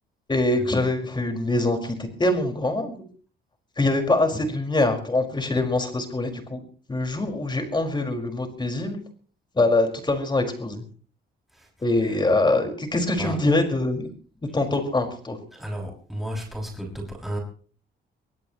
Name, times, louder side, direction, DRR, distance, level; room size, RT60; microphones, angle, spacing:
voice 1, 0.3-3.0 3.8-6.6 6.9-9.0 9.5-10.8 11.8-14.1 14.4-15.4, left 2 dB, 25° left, 5.1 m, -24 dB
voice 2, 15.5-17.4, equal, ahead, 6.3 m, -33 dB
25.0 x 17.0 x 3.1 m
cardioid pair, 90°, 20 cm